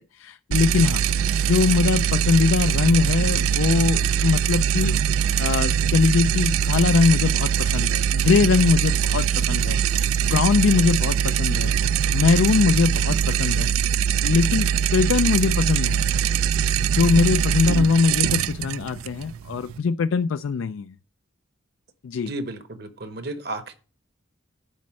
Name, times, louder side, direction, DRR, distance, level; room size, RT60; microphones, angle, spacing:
voice 1, 0.1-1.0 1.4-16.0 16.9-21.0 22.0-22.3, left 5 dB, 70° left, 0.3 m, -22 dB
sound 1, 0.5-19.8, right 8 dB, 85° right, 0.3 m, -22 dB
voice 2, 22.2-23.7, right 2 dB, 50° right, 0.9 m, -33 dB
10.0 x 4.2 x 7.4 m
head